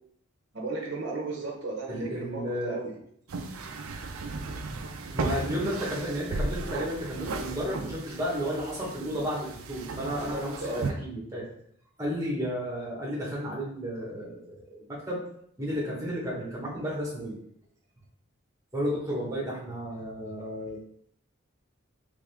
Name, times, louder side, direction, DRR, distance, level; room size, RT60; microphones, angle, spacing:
voice 1, 0.5-3.0 10.2-10.9, right 2 dB, 55° right, -1 dB, 0.8 m, -35 dB
voice 2, 1.9-2.8 5.1-11.4 12.0-15.2 15.6-17.4 18.7-20.8, equal, 15° right, -4 dB, 1.2 m, -33 dB
sound 1, 3.3-10.9, right 3 dB, 80° right, 0.5 m, -35 dB
3.6 x 3.4 x 3.4 m, 0.67 s
head